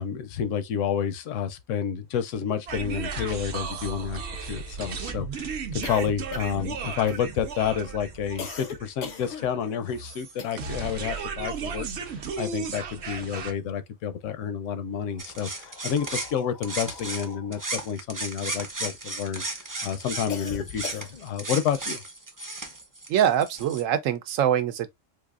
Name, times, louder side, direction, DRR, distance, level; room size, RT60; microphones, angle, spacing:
voice 1, 0.0-22.0, left 8 dB, 75° left, 0.9 m, -30 dB
sound 1, 2.7-13.5, right 5 dB, 60° right, 0.9 m, -35 dB
sound 2, 3.0-3.1 3.4-10.9 11.2-12.8 13.1-14.1 14.8-19.3 19.7-21.4, left 6 dB, 55° left, 0.5 m, -43 dB
sound 3, 15.2-17.3 17.5-23.8, right 2 dB, 25° right, 0.4 m, -35 dB
voice 2, 23.1-24.9, right 10 dB, 80° right, 1.0 m, -23 dB
4.0 x 2.6 x 2.4 m
omnidirectional pair, 1.3 m